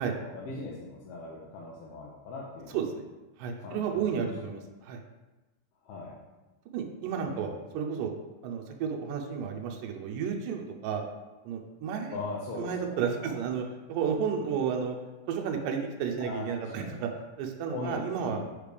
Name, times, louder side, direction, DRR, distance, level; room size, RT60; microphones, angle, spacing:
voice 1, 0.0-2.8 3.6-4.3 5.8-6.1 7.2-7.6 12.1-13.3 16.2-17.0 17.7-18.5, left 3 dB, 90° left, -5 dB, 2.8 m, -40 dB
voice 2, 3.4-5.0 6.7-8.1 8.4-11.0 11.5-12.2 12.5-15.0 15.3-17.1 17.4-18.4, right 7 dB, 80° right, 2 dB, 2.1 m, -32 dB
7.4 x 3.2 x 5.1 m, 1.1 s
omnidirectional pair, 4.2 m